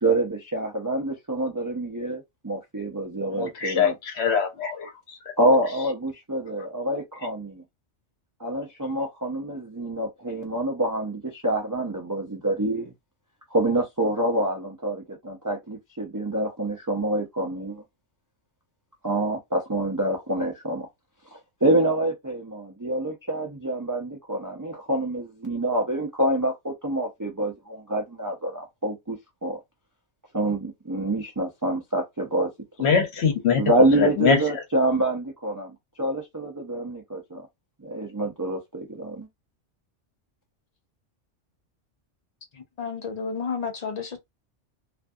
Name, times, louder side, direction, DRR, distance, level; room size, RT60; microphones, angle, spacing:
voice 1, 0.0-3.9 5.4-7.6 8.4-12.9 13.5-17.8 19.0-20.9 21.3-29.6 30.3-32.5 32.8-32.9 33.6-37.5 37.8-39.3, right 1 dB, 30° right, 0.3 m, -27 dB
voice 2, 3.4-5.2 32.8-33.6 34.0-34.4, left 6 dB, 65° left, 1.0 m, -23 dB
voice 3, 42.5-44.2, left 5 dB, 45° left, 0.6 m, -31 dB
2.6 x 2.5 x 2.3 m
omnidirectional pair, 1.2 m